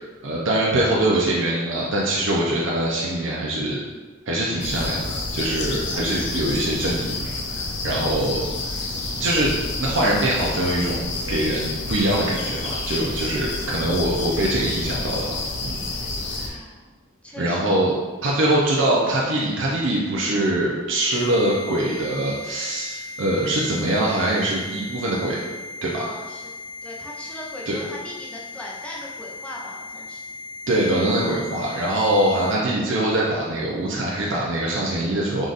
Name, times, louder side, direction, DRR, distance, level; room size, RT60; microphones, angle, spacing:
voice 1, 0.0-3.8 4.3-7.2 7.5-8.5 9.1-9.5 9.8-15.8 16.4-16.6 17.4-17.9 18.2-25.4 25.8-26.0 27.7-27.8 30.7-35.5, right 1 dB, 65° right, -4 dB, 0.6 m, -23 dB
sound 1, 4.6-16.5, left 2 dB, 60° left, 0.7 m, -29 dB
voice 2, 16.3-16.8 17.2-17.7 26.0-26.5 26.8-30.2, left 1 dB, 5° left, -4 dB, 0.6 m, -38 dB
sound 2, 21.1-32.5, left 3 dB, 90° left, 1.4 m, -37 dB
4.9 x 2.5 x 4.0 m, 1.3 s
head